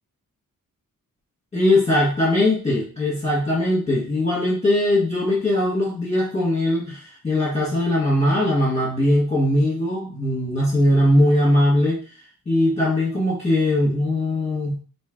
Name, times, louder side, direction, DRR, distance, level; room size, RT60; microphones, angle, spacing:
voice 1, 1.5-12.0 12.5-14.7, left 1 dB, 20° left, -7 dB, 1.2 m, -20 dB
3.1 x 2.7 x 3.7 m, 0.40 s
wide cardioid pair, 90°, 35 cm